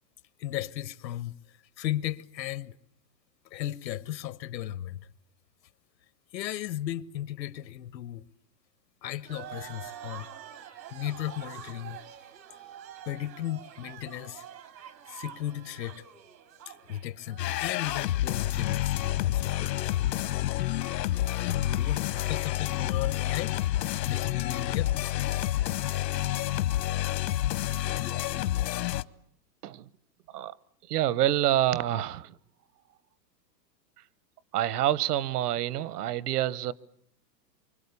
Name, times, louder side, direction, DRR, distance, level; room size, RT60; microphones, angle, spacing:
voice 1, 0.4-1.4 1.8-2.8 3.4-5.1 6.3-8.2 9.0-10.3 10.9-12.0 13.1-14.4 15.1-16.0 16.7-20.1 21.4-23.6 24.0-24.9, left 12 dB, 90° left, 1.2 m, -35 dB
sound 1, 9.2-18.0, right 10 dB, 85° right, 3.1 m, -46 dB
sound 2, 17.4-29.0, left 14 dB, 75° left, 1.0 m, -29 dB
voice 2, 30.9-32.4 34.5-36.7, right 12 dB, 65° right, 1.0 m, -27 dB
27.0 x 25.0 x 8.3 m
supercardioid pair, 170°, 50 cm